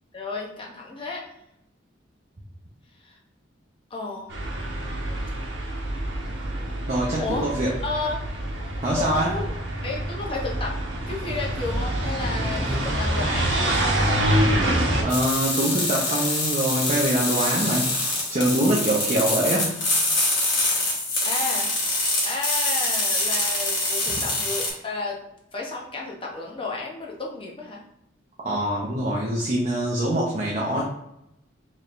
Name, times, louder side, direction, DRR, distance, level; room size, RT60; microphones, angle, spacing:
voice 1, 0.1-1.2 3.0-3.2 3.9-4.3 7.2-7.5 7.8-8.3 9.0-9.4 9.8-10.8 11.1-14.3 21.2-21.7 22.2-25.2 25.5-27.8, left 3 dB, 25° left, -1 dB, 0.7 m, -32 dB
sound 1, 4.3-15.0, right 1 dB, 65° right, 1.0 m, -26 dB
voice 2, 6.9-7.7 8.8-9.3 15.0-17.9 18.3-19.9 20.2-20.3 28.4-30.8, right 1 dB, 35° right, -4 dB, 0.6 m, -24 dB
sound 2, 15.1-24.7, left 2 dB, 60° left, 1.3 m, -25 dB
4.8 x 3.1 x 2.5 m, 0.84 s
head